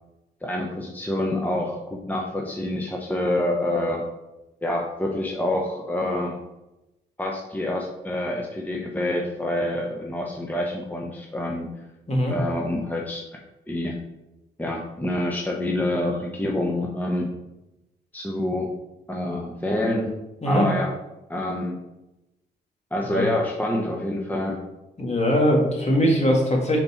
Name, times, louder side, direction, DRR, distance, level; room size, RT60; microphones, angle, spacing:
voice 1, 0.4-4.0 4.6-6.4 7.2-11.7 12.3-13.2 13.7-14.0 14.6-17.3 18.1-18.7 19.1-20.1 20.5-20.9 21.3-21.8 22.9-24.6, left 1 dB, 10° left, -1 dB, 0.9 m, -27 dB
voice 2, 25.0-26.8, equal, 35° left, 0 dB, 2.0 m, -21 dB
5.2 x 4.3 x 4.3 m, 0.97 s
supercardioid pair, 55°, 19 cm